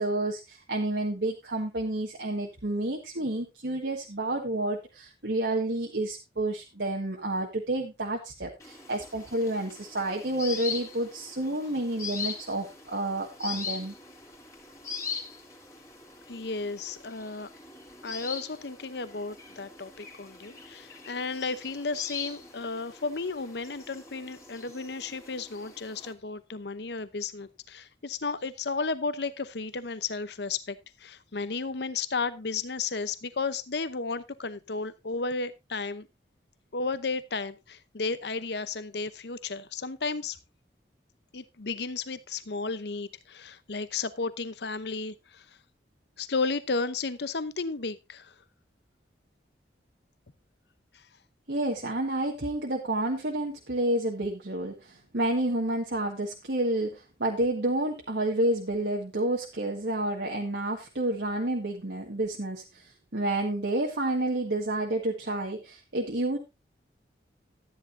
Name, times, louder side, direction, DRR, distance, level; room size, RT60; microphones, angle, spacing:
voice 1, 0.0-13.9 51.5-66.4, right 1 dB, 75° right, 1.7 m, -30 dB
sound 1, 8.6-26.1, left 5 dB, 15° left, 2.4 m, -41 dB
voice 2, 16.3-17.5 18.0-36.1 36.7-40.4 41.3-45.4 46.2-48.3, left 4 dB, 70° left, 0.8 m, -33 dB
13.0 x 10.0 x 2.7 m
head